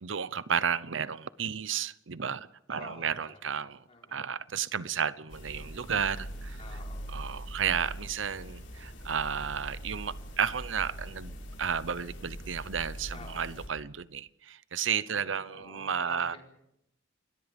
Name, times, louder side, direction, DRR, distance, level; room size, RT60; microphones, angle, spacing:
voice 1, 0.0-3.8 4.1-6.6 7.1-11.3 11.6-16.4, right 7 dB, 70° right, 0.8 m, -32 dB
voice 2, 2.7-3.5 3.9-4.2 6.6-7.1 13.1-13.5 15.1-16.4, left 3 dB, 35° left, 4.4 m, -49 dB
sound 1, 5.3-13.7, equal, 80° left, 7.2 m, -42 dB
28.5 x 21.5 x 5.3 m
head